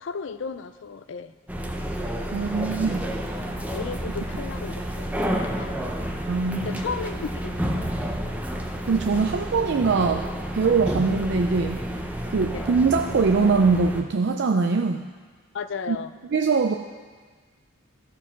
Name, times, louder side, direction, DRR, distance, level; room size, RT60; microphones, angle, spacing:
voice 1, 0.0-1.3 2.3-2.8 3.7-6.1 6.6-8.2 12.5-12.7 15.5-16.1, left 5 dB, 65° left, 11 dB, 0.5 m, -35 dB
sound 1, 1.5-14.0, equal, 10° right, 0.6 m, -30 dB
voice 2, 2.3-3.0 6.3-6.8 8.8-10.3 10.5-11.8 12.3-15.1 15.9-16.0 16.3-16.7, right 4 dB, 60° right, 4 dB, 0.4 m, -22 dB
14.0 x 4.8 x 5.8 m, 1.5 s
head